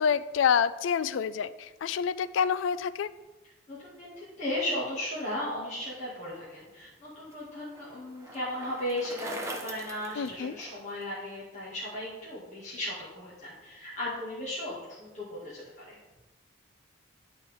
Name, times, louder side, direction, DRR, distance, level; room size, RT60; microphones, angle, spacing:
voice 1, 0.0-3.1 10.2-10.5, left 7 dB, 75° left, 16 dB, 0.3 m, -27 dB
voice 2, 3.7-16.0, left 1 dB, 35° left, -9 dB, 2.1 m, -36 dB
Bicycle, 6.6-11.0, right 1 dB, 15° right, 0.8 m, -42 dB
11.5 x 4.3 x 3.6 m, 1.1 s
head